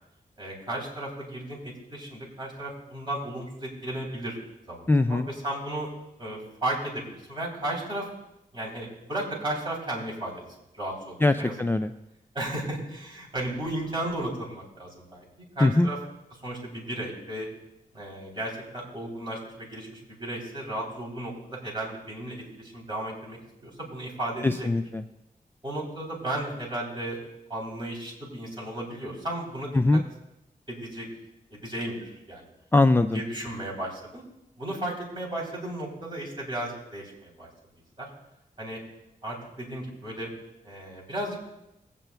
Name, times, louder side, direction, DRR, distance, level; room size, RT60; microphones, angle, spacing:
voice 1, 0.4-4.4 4.7-5.9 6.2-8.1 8.5-10.4 10.7-11.6 12.3-15.2 15.6-16.0 16.4-17.5 17.9-24.7 25.6-27.2 27.5-30.0 30.7-31.1 31.5-32.5 33.1-34.2 34.6-37.5 38.0-38.1 38.6-38.8 39.2-40.3 40.6-41.5, right 1 dB, 30° right, -4 dB, 3.4 m, -34 dB
voice 2, 4.9-5.3 11.2-11.9 15.6-15.9 24.4-25.0 29.7-30.0 32.7-33.2, left 2 dB, 15° left, 7 dB, 0.4 m, -21 dB
20.0 x 9.0 x 2.3 m, 0.89 s
wide cardioid pair, 85°, 15 cm